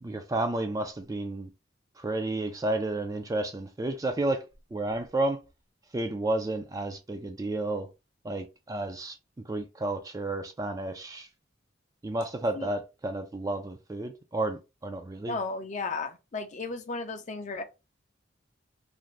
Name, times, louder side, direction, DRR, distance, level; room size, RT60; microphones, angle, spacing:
voice 1, 0.0-1.5 2.0-4.5 4.7-5.4 5.9-7.9 8.2-9.2 9.4-11.3 12.0-15.4, right 2 dB, 20° right, 0.3 m, -31 dB
voice 2, 15.3-17.6, left 3 dB, 40° left, 0.5 m, -34 dB
2.6 x 2.5 x 3.1 m
head